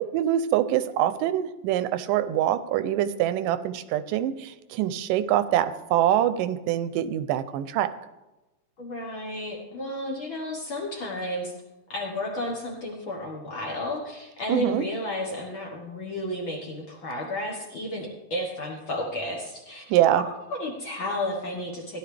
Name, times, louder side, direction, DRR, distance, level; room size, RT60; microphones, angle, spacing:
voice 1, 0.1-7.9 14.5-14.9 19.9-20.2, right 11 dB, 90° right, 12 dB, 2.3 m, -24 dB
voice 2, 8.8-11.5 11.9-19.8 20.5-22.0, left 1 dB, 50° left, 0 dB, 1.6 m, -32 dB
16.5 x 11.0 x 3.4 m, 1.0 s
omnidirectional pair, 3.7 m